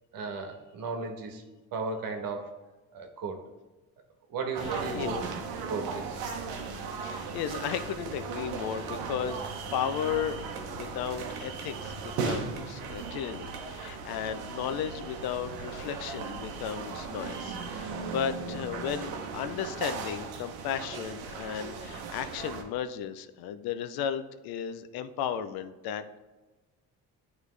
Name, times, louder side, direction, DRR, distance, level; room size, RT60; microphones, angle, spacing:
voice 1, 0.1-1.4 1.7-2.6 2.9-3.4 4.3-5.2 5.6-6.2, right 4 dB, 70° right, 4 dB, 1.2 m, -35 dB
sound 1, 4.5-22.6, right 5 dB, 90° right, 0.9 m, -37 dB
voice 2, 4.6-5.2 6.9-26.2, left 8 dB, 80° left, 11 dB, 0.6 m, -35 dB
9.3 x 3.3 x 3.2 m, 1.2 s
supercardioid pair, 80°, 36 cm